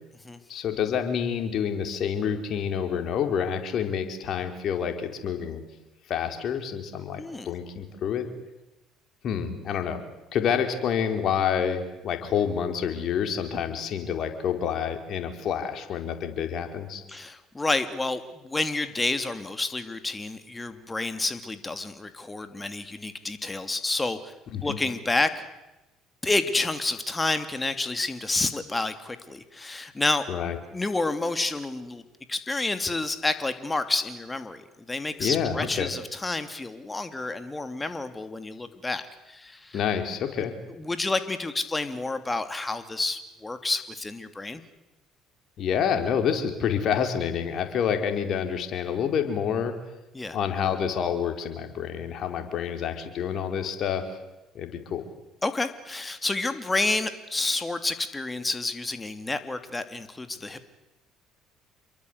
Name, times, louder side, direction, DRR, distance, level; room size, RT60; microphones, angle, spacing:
voice 1, 0.5-5.6 6.1-8.3 9.2-10.0 10.3-17.0 24.5-24.8 30.3-30.6 35.2-35.9 39.7-40.5 45.6-49.7 50.3-54.1 54.5-55.1, left 8 dB, 55° left, 6 dB, 4.6 m, -28 dB
voice 2, 7.2-7.5 17.1-24.3 24.6-25.5 26.2-30.2 30.6-32.0 32.3-34.6 34.9-39.8 40.8-44.6 50.1-50.4 55.4-60.7, left 2 dB, 20° left, 9 dB, 2.9 m, -29 dB
28.5 x 23.0 x 8.2 m, 0.98 s
hypercardioid pair, 60°, 0 cm